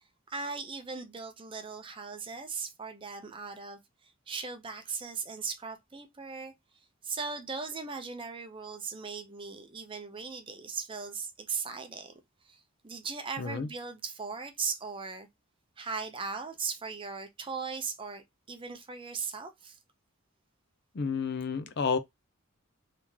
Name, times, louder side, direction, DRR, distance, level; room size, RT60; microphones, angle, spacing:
voice 1, 0.3-6.5 7.0-15.3 15.8-19.8, right 5 dB, 25° right, 0.6 m, -38 dB
voice 2, 13.4-13.7 20.9-22.0, left 5 dB, 50° left, 0.5 m, -30 dB
3.1 x 2.9 x 3.5 m
head